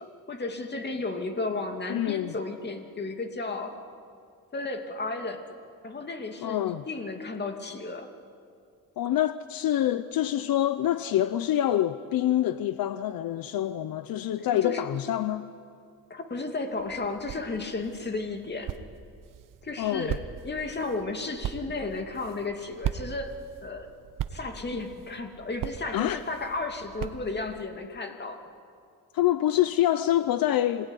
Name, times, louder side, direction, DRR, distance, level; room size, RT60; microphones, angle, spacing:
voice 1, 0.0-3.7 4.5-5.4 5.8-8.1 14.4-14.8 16.1-18.7 19.6-23.3 23.6-23.9 24.3-28.4, left 3 dB, 30° left, 2.7 m, -33 dB
voice 2, 1.9-2.3 6.4-6.8 9.0-15.5 19.8-20.2 25.9-26.2 29.1-30.9, left 12 dB, 70° left, 0.8 m, -26 dB
sound 1, 16.7-27.7, right 10 dB, 60° right, 1.1 m, -39 dB
26.0 x 19.0 x 9.9 m
cardioid pair, 120°, 36 cm